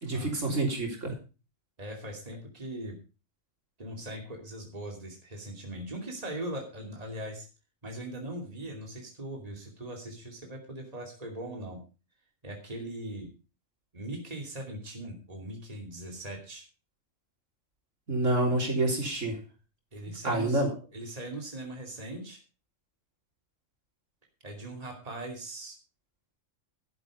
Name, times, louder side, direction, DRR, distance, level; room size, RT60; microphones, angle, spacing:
voice 1, 0.0-1.1 18.1-19.4 20.2-20.7, right 2 dB, 65° right, 1 dB, 4.0 m, -27 dB
voice 2, 1.8-3.0 3.8-7.5 7.8-11.8 12.4-13.3 13.9-16.6 19.9-20.6 20.9-22.4 24.4-25.8, right 1 dB, 30° right, 1 dB, 2.8 m, -40 dB
12.0 x 10.5 x 5.0 m, 0.33 s
omnidirectional pair, 1.4 m